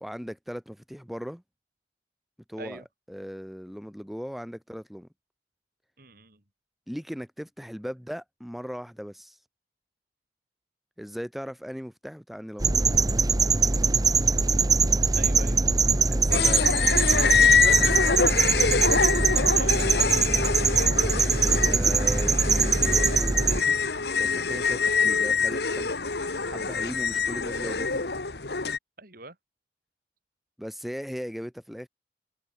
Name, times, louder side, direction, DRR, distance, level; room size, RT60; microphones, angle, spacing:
voice 1, 0.0-1.4 2.5-5.1 6.9-9.4 11.0-12.8 15.2-17.1 17.7-18.5 21.7-23.8 24.2-25.9 26.3-28.0 30.6-31.9, equal, ahead, 1.7 m, -38 dB
voice 2, 6.0-6.4 15.1-15.8 19.5-20.0 29.0-29.4, right 3 dB, 55° right, 5.2 m, -44 dB
sound 1, 12.6-23.6, right 4 dB, 20° right, 0.9 m, -22 dB
sound 2, 16.3-28.8, left 5 dB, 65° left, 1.7 m, -25 dB
head